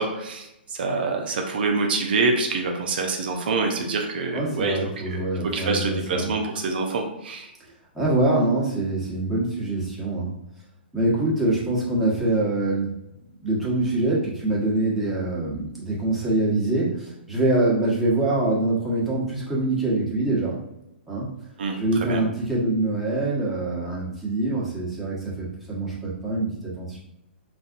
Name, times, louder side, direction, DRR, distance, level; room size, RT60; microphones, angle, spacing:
voice 1, 0.0-4.8 5.1-5.2 5.5-7.5 21.6-22.2, right 3 dB, 60° right, 3 dB, 0.6 m, -26 dB
voice 2, 4.3-6.3 7.9-10.3 10.9-12.9 13.4-20.6 21.1-21.3 21.8-27.0, right 2 dB, 5° right, -8 dB, 1.1 m, -24 dB
3.9 x 2.5 x 2.5 m, 0.87 s
hypercardioid pair, 125°, 6 cm